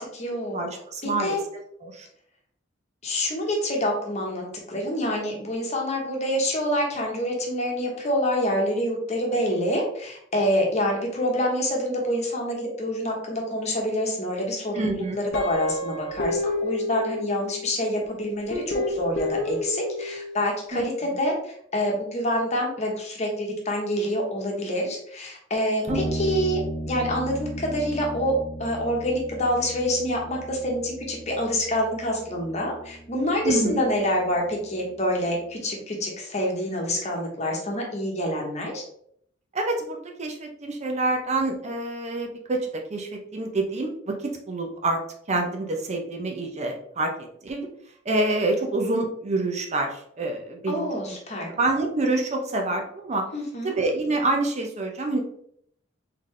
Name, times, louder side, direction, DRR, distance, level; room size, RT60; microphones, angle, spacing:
voice 1, 0.0-1.4 3.0-26.6 26.9-38.8 50.7-51.5 53.3-53.7, equal, 35° left, 0 dB, 1.1 m, -27 dB
voice 2, 0.5-1.4 1.8-2.1 14.7-15.2 20.7-20.8 25.9-26.1 33.4-33.8 39.5-45.0 45.3-47.7 48.1-50.9 51.5-53.2 53.6-55.2, right 2 dB, 35° right, 3 dB, 0.6 m, -27 dB
Guitar, 15.3-17.8 18.5-20.4, left 2 dB, 65° left, 0.7 m, -30 dB
sound 1, 25.9-35.4, right 1 dB, 5° right, 1.1 m, -36 dB
3.8 x 3.7 x 3.2 m, 0.66 s
head